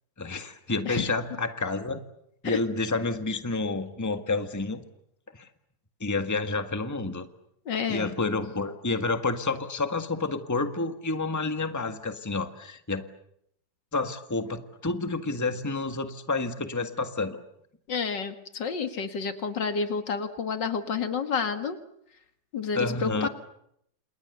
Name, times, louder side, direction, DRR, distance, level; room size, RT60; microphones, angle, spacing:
voice 1, 0.2-2.0 2.4-4.8 5.3-5.5 6.0-7.3 7.9-13.0 13.9-17.4 22.7-23.3, left 3 dB, 10° left, 8 dB, 1.6 m, -29 dB
voice 2, 7.7-8.2 17.9-21.8 22.5-23.3, left 5 dB, 65° left, 8 dB, 2.5 m, -30 dB
30.0 x 28.5 x 6.9 m, 0.74 s
omnidirectional pair, 2.1 m